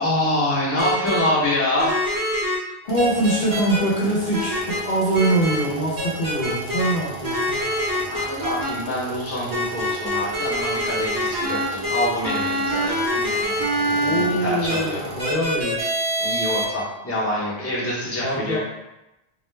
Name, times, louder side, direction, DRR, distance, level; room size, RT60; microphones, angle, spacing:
voice 1, 0.0-1.9 8.1-15.1 16.2-18.6, left 1 dB, 15° left, -8 dB, 0.7 m, -26 dB
sound 1, 0.8-1.2 1.8-2.6 3.0-3.8 4.3-4.8 5.1-5.6 6.0-6.9 7.2-8.7 9.5-14.2 14.6-14.8 15.2-16.6, equal, 25° right, 0.6 m, -25 dB
sound 2, 2.8-15.3, right 3 dB, 55° right, 0.8 m, -37 dB
voice 2, 2.9-7.6 13.9-15.8 18.2-18.6, right 1 dB, 70° left, -5 dB, 0.9 m, -23 dB
2.3 x 2.1 x 3.1 m, 0.94 s
omnidirectional pair, 1.1 m